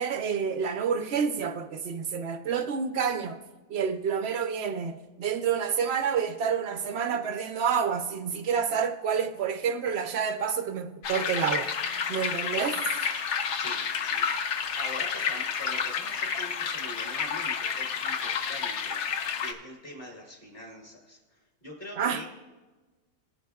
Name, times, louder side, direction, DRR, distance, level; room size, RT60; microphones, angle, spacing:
voice 1, 0.0-3.4 3.7-11.7 12.1-12.8 22.0-22.2, right 7 dB, 75° right, 0.5 m, -28 dB
sound 1, 11.0-19.5, left 6 dB, 60° left, 0.8 m, -30 dB
voice 2, 13.6-22.2, equal, 35° left, 1.5 m, -44 dB
19.5 x 8.0 x 2.3 m
omnidirectional pair, 1.7 m